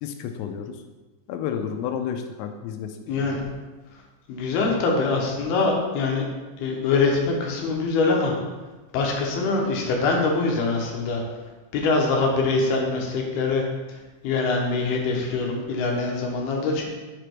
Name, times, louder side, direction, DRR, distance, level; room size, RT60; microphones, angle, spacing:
voice 1, 0.0-0.8 1.3-3.0 3.3-3.4, left 8 dB, 85° left, 6 dB, 2.9 m, -31 dB
voice 2, 3.1-3.4 4.3-6.3 6.6-8.3 8.9-11.2 11.7-13.6 14.2-16.9, left 3 dB, 70° left, 0 dB, 2.7 m, -23 dB
7.7 x 5.0 x 4.5 m, 1.2 s
omnidirectional pair, 5.2 m